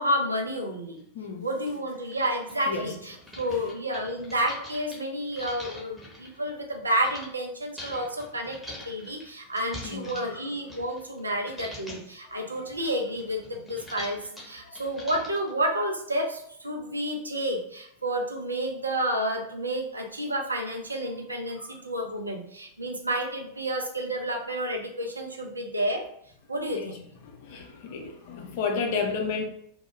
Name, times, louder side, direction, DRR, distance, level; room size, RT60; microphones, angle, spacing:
voice 1, 0.0-1.0 1.4-14.2 14.4-26.0 26.5-27.0, right 1 dB, 80° right, 0.5 m, -30 dB
sound 1, 1.0-1.1 1.7-1.8 2.0-7.3 7.8-11.2 11.5-12.1 12.5-15.5, left 1 dB, ahead, 0.9 m, -44 dB
voice 2, 1.1-1.5 2.7-2.9 9.8-10.2 14.6-14.8 21.6-21.7 26.7-26.9 27.4-29.5, left 5 dB, 50° left, 0.5 m, -31 dB
2.2 x 2.0 x 3.1 m
figure-of-eight pair, 90°, 0 cm